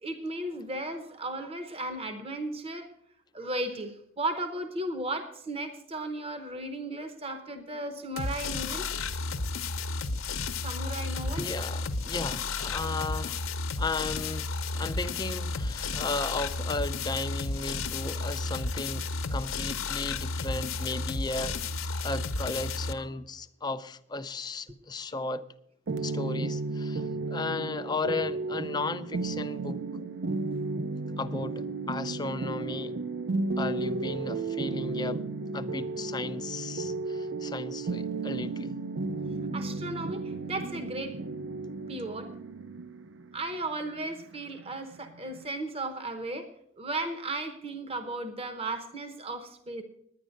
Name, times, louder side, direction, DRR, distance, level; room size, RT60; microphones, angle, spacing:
voice 1, 0.0-2.9 3.3-8.9 10.6-11.5 39.5-41.2 41.9-42.3 43.3-46.5 46.8-49.8, right 2 dB, 30° right, 0.8 m, -35 dB
sound 1, 8.2-22.9, left 3 dB, 80° left, 0.8 m, -32 dB
voice 2, 11.4-13.5 13.8-25.4 26.0-30.0 31.2-33.0 33.6-35.2 35.5-38.8, left 3 dB, 20° left, 0.4 m, -35 dB
sound 2, 25.9-45.4, right 3 dB, 60° right, 0.5 m, -34 dB
10.0 x 9.9 x 6.3 m
head